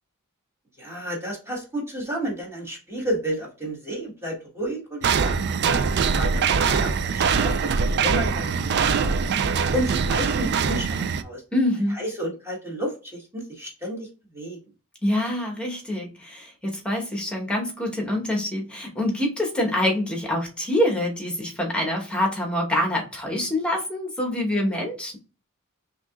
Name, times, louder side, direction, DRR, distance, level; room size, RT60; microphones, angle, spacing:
voice 1, 0.8-5.4 5.9-7.7 8.0-9.2 9.7-11.4 11.9-14.6, equal, 10° right, 1.6 m, -31 dB
sound 1, 5.0-11.2, right 5 dB, 55° right, 0.4 m, -23 dB
voice 2, 11.5-12.0 15.0-25.2, left 1 dB, 5° left, 1.2 m, -25 dB
5.9 x 2.9 x 2.4 m
head